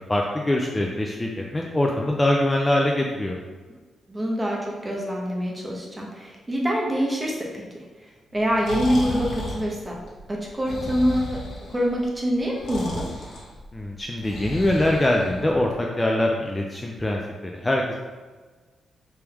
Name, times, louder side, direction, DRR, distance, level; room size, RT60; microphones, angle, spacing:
voice 1, 0.1-3.4 13.7-17.2 17.5-18.0, left 1 dB, 15° left, -1 dB, 0.3 m, -23 dB
voice 2, 4.1-7.5 7.7-10.0 10.3-11.4 11.7-13.1, equal, 20° right, -2 dB, 0.8 m, -25 dB
Breathing, 8.3-15.8, left 1 dB, 75° left, 1.0 m, -35 dB
3.4 x 3.4 x 3.0 m, 1.3 s
cardioid pair, 125°, 0 cm